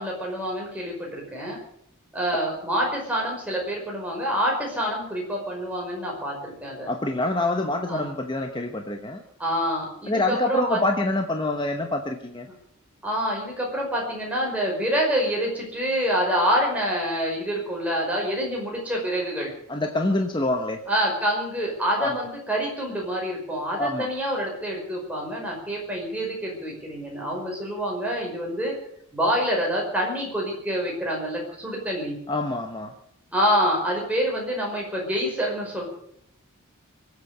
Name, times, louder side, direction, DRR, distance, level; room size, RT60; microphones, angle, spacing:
voice 1, 0.0-1.6 2.1-6.9 7.9-8.1 9.4-10.8 13.0-19.5 20.9-28.8 29.1-32.2 33.3-35.8, equal, 5° right, -2 dB, 5.3 m, -27 dB
voice 2, 6.9-9.2 10.1-12.5 19.7-20.8 22.0-22.2 23.8-24.1 32.3-32.9, left 2 dB, 20° left, 4 dB, 1.0 m, -26 dB
24.0 x 8.4 x 6.7 m, 0.68 s
head